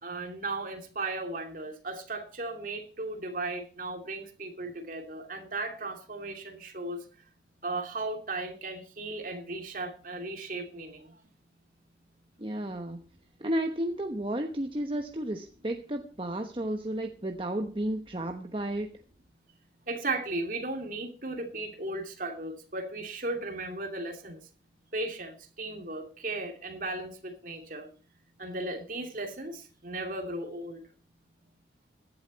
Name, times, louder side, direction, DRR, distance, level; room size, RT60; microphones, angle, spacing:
voice 1, 0.0-7.0 7.6-11.1 19.9-24.4 24.9-27.9 28.4-30.8, right 2 dB, 45° right, 4 dB, 2.7 m, -36 dB
voice 2, 12.4-13.0 13.4-18.9, right 1 dB, 30° right, 4 dB, 1.0 m, -32 dB
16.0 x 11.5 x 4.1 m, 0.37 s
head